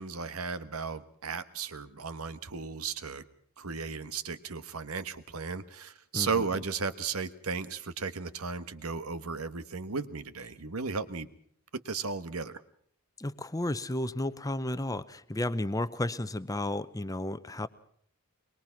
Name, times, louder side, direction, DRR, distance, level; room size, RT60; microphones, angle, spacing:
voice 1, 0.0-3.2 3.6-11.3 11.7-12.6, right 5 dB, 80° right, 13 dB, 1.4 m, -35 dB
voice 2, 13.2-17.7, left 1 dB, 15° left, 14 dB, 0.8 m, -32 dB
23.5 x 22.0 x 5.9 m, 0.63 s
head